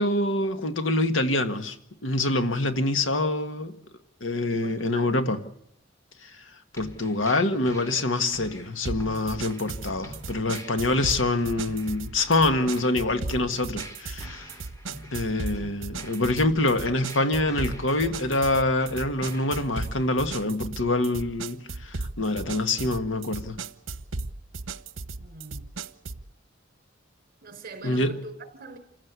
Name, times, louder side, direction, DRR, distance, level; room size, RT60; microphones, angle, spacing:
voice 1, 0.0-1.8 2.0-3.8 4.2-5.4 6.2-6.4 6.7-14.5 15.1-23.6 27.8-28.1, left 2 dB, 75° left, 1.8 m, -25 dB
voice 2, 4.5-5.3 25.2-25.6 27.4-28.8, right 3 dB, 50° right, 4.5 m, -43 dB
sound 1, 6.8-20.1, equal, 15° left, 3.9 m, -46 dB
sound 2, 8.8-26.3, right 3 dB, 85° right, 1.0 m, -36 dB
28.0 x 15.5 x 8.3 m
head